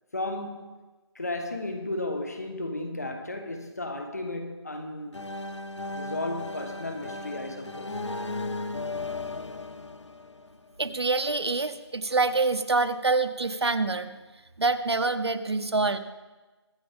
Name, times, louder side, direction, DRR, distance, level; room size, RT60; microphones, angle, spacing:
voice 1, 0.1-0.7 1.1-5.3 5.9-8.0, left 2 dB, 35° left, 1.2 m, -34 dB
sound 1, 5.1-10.9, left 2 dB, 85° left, 1.1 m, -36 dB
voice 2, 10.8-14.1 14.6-16.0, right 3 dB, 65° right, 0.9 m, -26 dB
22.5 x 8.0 x 3.5 m
figure-of-eight pair, 180°, 15 cm